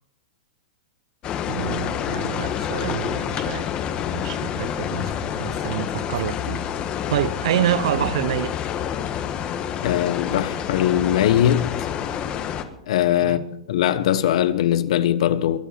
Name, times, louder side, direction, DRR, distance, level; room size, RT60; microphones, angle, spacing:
sound 1, 1.2-12.6, left 9 dB, 30° left, 1.3 m, -28 dB
voice 1, 1.5-3.7 4.1-6.7 7.1-8.6 13.2-13.4, right 11 dB, 65° right, 0.9 m, -27 dB
voice 2, 9.8-11.9 12.9-15.6, left 11 dB, 65° left, 1.1 m, -21 dB
22.0 x 8.6 x 5.8 m
hypercardioid pair, 140°, 4 cm